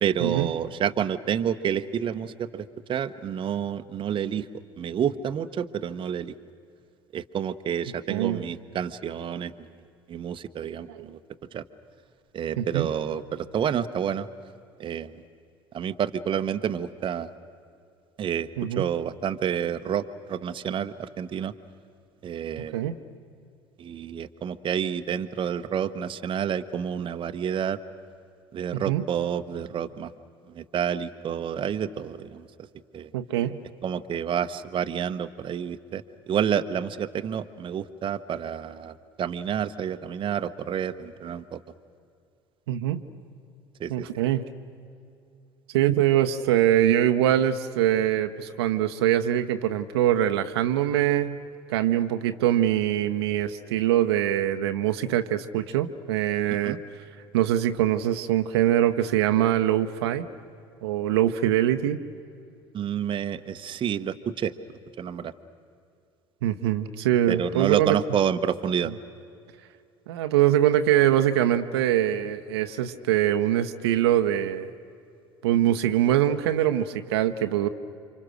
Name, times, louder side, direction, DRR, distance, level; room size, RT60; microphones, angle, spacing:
voice 1, 0.0-4.5 4.8-6.3 7.1-9.5 10.1-11.2 11.5-11.6 12.3-14.3 14.8-15.2 15.7-17.3 18.2-18.5 18.8-21.5 22.2-22.8 23.8-27.8 28.5-30.1 30.5-32.5 32.9-33.1 33.8-41.6 43.8-44.1 56.5-56.8 62.7-64.5 65.0-65.3 67.3-68.9, right 8 dB, 35° right, 9 dB, 1.0 m, -29 dB
voice 2, 8.1-8.4 10.9-11.0 12.6-12.9 18.6-18.9 22.7-23.0 28.7-29.0 33.1-33.6 42.7-43.0 43.9-44.4 45.7-51.4 51.7-56.8 57.3-60.3 60.8-62.0 66.4-68.0 70.1-74.7 75.4-77.7, right 12 dB, 70° right, 7 dB, 0.9 m, -23 dB
29.5 x 26.5 x 6.4 m, 2.5 s
figure-of-eight pair, 60°, 14 cm